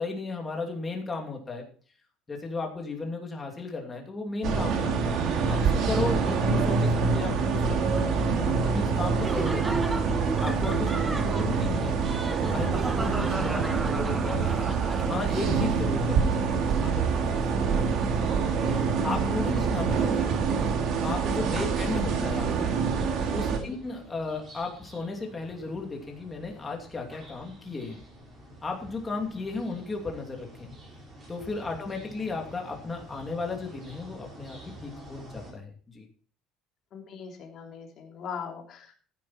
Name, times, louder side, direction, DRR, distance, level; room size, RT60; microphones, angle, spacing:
voice 1, 0.0-1.7 2.3-5.2 5.5-9.7 10.4-12.0 12.5-14.5 15.1-17.9 19.0-20.3 21.0-22.7 23.3-28.0 28.6-30.7 31.3-36.0, left 3 dB, 15° left, 1 dB, 2.7 m, -35 dB
sound 1, 4.4-23.6, right 5 dB, 45° right, 2.3 m, -26 dB
Laughter, 9.2-15.5, right 2 dB, 10° right, 0.6 m, -35 dB
voice 2, 18.6-19.0 23.6-23.8 36.9-38.9, left 7 dB, 35° left, 1 dB, 3.2 m, -41 dB
sound 2, 23.5-35.5, equal, 25° right, 5.7 m, -48 dB
15.0 x 10.0 x 4.3 m, 0.43 s
cardioid pair, 165°, 0 cm